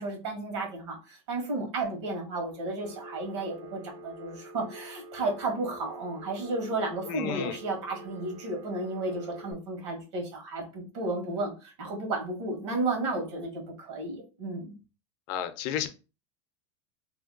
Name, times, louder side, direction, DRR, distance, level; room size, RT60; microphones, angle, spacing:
voice 1, 0.0-14.7, right 2 dB, 80° right, 2 dB, 1.4 m, -33 dB
Telephone, 2.8-9.5, equal, 65° right, 0.9 m, -46 dB
voice 2, 7.1-7.6 15.3-15.9, left 10 dB, 55° left, 9 dB, 0.5 m, -32 dB
2.8 x 2.3 x 3.7 m, 0.32 s
supercardioid pair, 155°, 15 cm